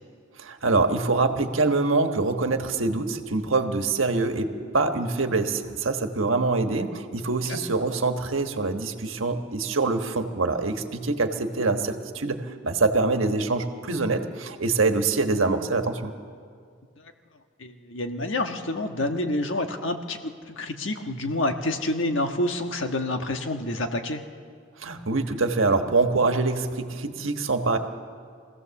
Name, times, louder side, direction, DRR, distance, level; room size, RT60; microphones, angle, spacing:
voice 1, 0.3-16.1 24.8-27.8, right 3 dB, 80° right, 6 dB, 1.4 m, -25 dB
voice 2, 17.6-24.2, left 1 dB, 70° left, 5 dB, 1.4 m, -28 dB
24.5 x 16.0 x 7.1 m, 2.1 s
head